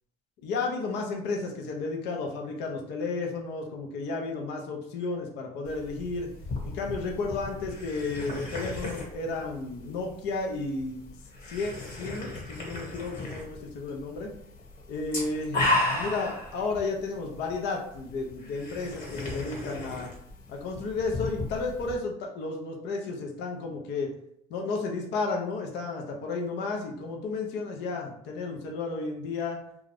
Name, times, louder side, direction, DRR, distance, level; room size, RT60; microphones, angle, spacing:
voice 1, 0.4-6.3 6.6-11.0 11.5-14.3 14.9-15.6 15.9-20.1 20.5-24.1 24.5-29.6, left 3 dB, 70° left, 1 dB, 0.6 m, -32 dB
sound 1, 5.6-21.9, left 2 dB, 50° left, 1.3 m, -35 dB
2.5 x 2.3 x 3.3 m, 0.71 s
cardioid pair, 105°, 18 cm